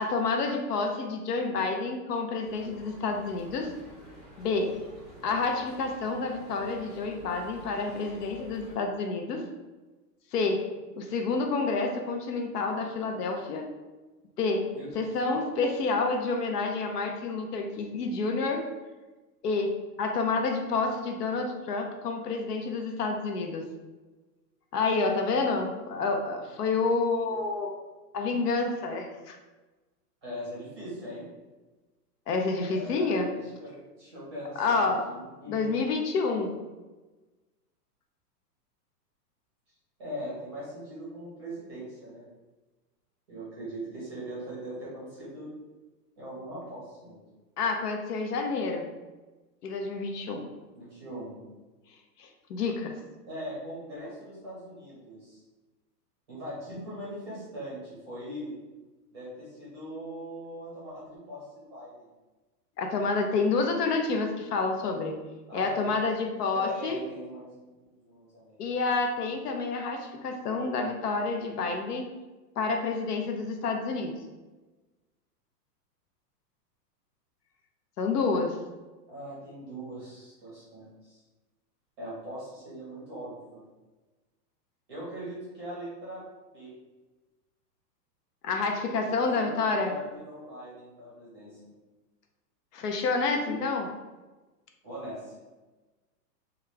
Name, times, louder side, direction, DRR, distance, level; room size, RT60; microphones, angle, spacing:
voice 1, 0.0-3.7 4.4-4.7 5.2-9.4 10.3-10.6 10.9-13.7 14.4-14.6 14.9-18.6 19.4-19.7 20.0-23.6 24.7-27.7 28.1-29.4 32.3-33.3 34.6-35.0 35.5-36.6 47.6-48.8 49.6-50.4 52.2-52.9 62.8-65.2 65.5-67.0 68.6-72.1 72.6-74.1 78.0-78.6 88.4-89.9 92.7-93.9, left 3 dB, 70° left, 3 dB, 0.7 m, -29 dB
sound 1, 2.4-8.7, equal, 30° left, 0.3 m, -50 dB
voice 2, 30.2-31.2 32.6-35.7 36.3-36.4 40.0-42.3 43.3-45.5 46.2-47.2 50.7-51.4 53.3-55.4 56.3-58.6 59.1-61.4 61.7-61.9 65.5-66.2 66.5-67.5 68.0-68.7 79.1-81.2 82.0-83.7 84.9-86.2 86.5-86.7 89.2-91.6 94.8-95.3, equal, 15° right, -8 dB, 0.6 m, -41 dB
2.9 x 2.4 x 3.3 m, 1.2 s
supercardioid pair, 175°, 49 cm